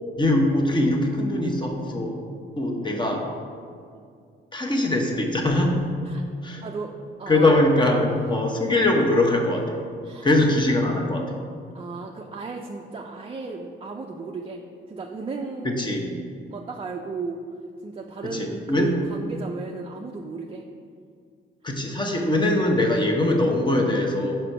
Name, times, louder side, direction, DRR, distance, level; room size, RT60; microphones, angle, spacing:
voice 1, 0.2-2.2 2.6-3.3 4.5-5.8 6.4-6.6 7.3-9.8 10.2-11.3 15.6-16.1 18.3-18.9 21.6-24.4, left 1 dB, 25° left, 2 dB, 1.0 m, -22 dB
voice 2, 6.6-6.9 7.2-8.2 10.0-10.3 11.7-14.6 14.9-15.8 16.5-17.4 17.8-20.6, right 4 dB, 30° right, 1 dB, 0.4 m, -35 dB
4.9 x 4.4 x 5.9 m, 2.3 s
cardioid pair, 90°, 20 cm